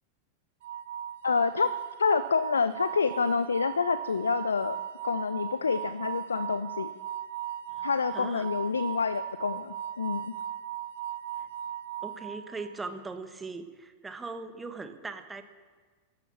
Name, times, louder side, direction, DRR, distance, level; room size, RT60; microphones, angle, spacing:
sound 1, 0.6-12.9, right 10 dB, 55° right, 0.6 m, -38 dB
voice 1, 1.2-1.7 2.0-4.8 5.0-6.9 7.8-10.3, left 5 dB, 75° left, 14 dB, 0.5 m, -27 dB
voice 2, 7.7-8.5 12.0-15.4, right 3 dB, 10° right, 8 dB, 1.5 m, -40 dB
15.0 x 11.5 x 7.1 m, 1.4 s
figure-of-eight pair, 90°, 0 cm